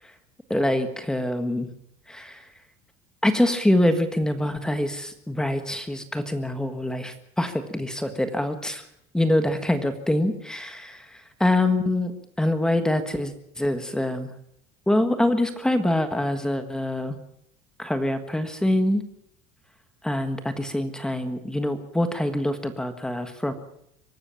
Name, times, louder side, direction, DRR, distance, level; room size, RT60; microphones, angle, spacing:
voice 1, 0.5-1.7 2.1-2.4 3.2-8.8 9.1-11.1 11.4-12.1 12.4-14.3 14.9-17.2 17.8-19.0 20.0-23.5, left 1 dB, 5° left, 9 dB, 1.5 m, -25 dB
24.0 x 13.0 x 8.9 m, 0.72 s
cardioid pair, 165°, 18 cm